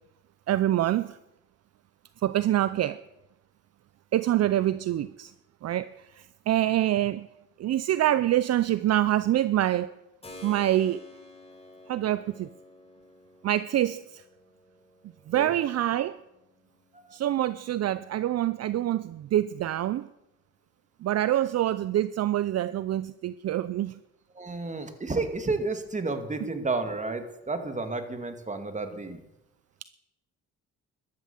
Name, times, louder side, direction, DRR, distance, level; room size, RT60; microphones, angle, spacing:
voice 1, 0.5-1.2 2.2-3.0 4.1-5.3 5.6-7.3 7.6-9.9 10.4-11.0 11.9-12.5 13.4-14.2 15.3-16.2 17.1-20.1 21.0-24.0, right 13 dB, 60° right, 0.6 m, -26 dB
Keyboard (musical), 10.2-18.8, left 2 dB, 20° left, 4.1 m, -52 dB
voice 2, 24.4-29.2, right 3 dB, 25° right, 2.3 m, -31 dB
14.0 x 12.0 x 7.3 m
cardioid pair, 90°, 30 cm